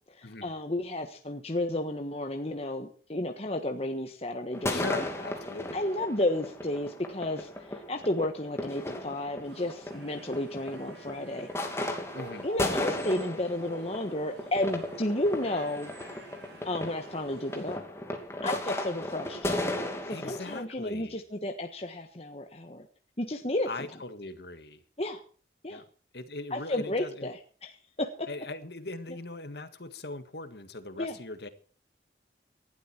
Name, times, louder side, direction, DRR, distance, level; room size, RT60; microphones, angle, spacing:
voice 1, 0.1-5.1 5.7-7.5 7.9-11.9 12.4-15.9 16.6-17.8 18.4-19.5 20.1-22.8 23.2-23.7 25.0-25.2 25.6-25.8 26.5-27.7 28.0-28.3 31.0-31.2, left 1 dB, 35° left, 5 dB, 1.4 m, -32 dB
sound 1, 4.5-20.6, left 1 dB, 15° left, 2.6 m, -36 dB
voice 2, 4.7-5.8 12.1-12.5 20.1-21.2 23.7-24.8 25.7-25.8 26.1-27.3 28.3-31.5, left 2 dB, 65° left, 10 dB, 1.8 m, -40 dB
sound 2, 9.4-17.8, right 1 dB, 80° right, 7.2 m, -49 dB
19.0 x 12.0 x 4.5 m, 0.42 s
head